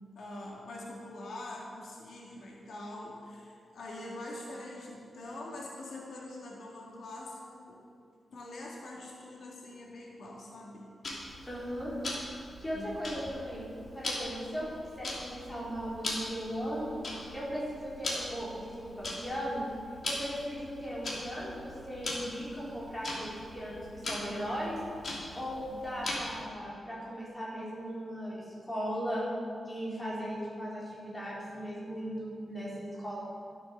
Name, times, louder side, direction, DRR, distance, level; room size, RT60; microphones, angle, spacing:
voice 1, 0.1-7.8 8.3-10.9 12.7-12.9, left 1 dB, 70° left, -3 dB, 2.3 m, -44 dB
Tick-tock, 11.0-26.5, left 1 dB, 45° left, 3.0 m, -41 dB
voice 2, 11.4-12.3 12.6-13.7 13.9-14.7 15.0-17.0 17.3-19.7 20.0-24.8 25.3-29.3 29.7-33.2, equal, 10° left, -7 dB, 4.1 m, -37 dB
13.0 x 9.2 x 6.6 m, 2.4 s
wide cardioid pair, 155°, 0 cm